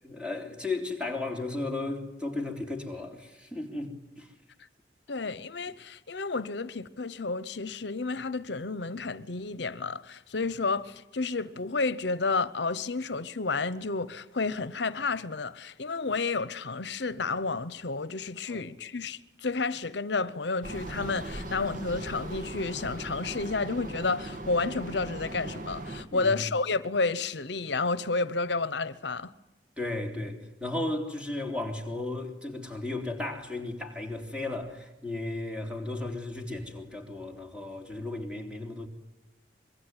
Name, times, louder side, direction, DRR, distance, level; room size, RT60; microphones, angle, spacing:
voice 1, 0.0-4.3 18.5-18.7 26.1-26.3 29.8-38.9, left 2 dB, 5° right, 3.6 m, -35 dB
voice 2, 5.1-29.3, left 3 dB, 70° left, 0.9 m, -31 dB
sound 1, 20.6-26.0, right 1 dB, 45° right, 2.2 m, -39 dB
25.5 x 23.0 x 9.8 m
head